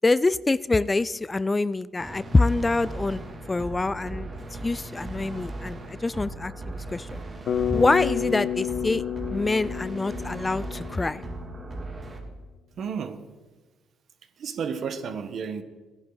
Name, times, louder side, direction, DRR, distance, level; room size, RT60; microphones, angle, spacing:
voice 1, 0.0-3.2 3.5-4.3 4.6-7.2 7.7-9.0 9.3-11.2, left 3 dB, 20° left, 18 dB, 0.3 m, -25 dB
sound 1, 2.0-12.2, right 2 dB, 40° right, 2.5 m, -38 dB
Bass guitar, 7.5-11.6, left 10 dB, 60° left, 1.1 m, -30 dB
voice 2, 12.8-13.2 14.4-15.6, right 6 dB, 65° right, 9 dB, 1.2 m, -32 dB
16.0 x 10.5 x 4.0 m, 1.3 s
cardioid pair, 90°, 0 cm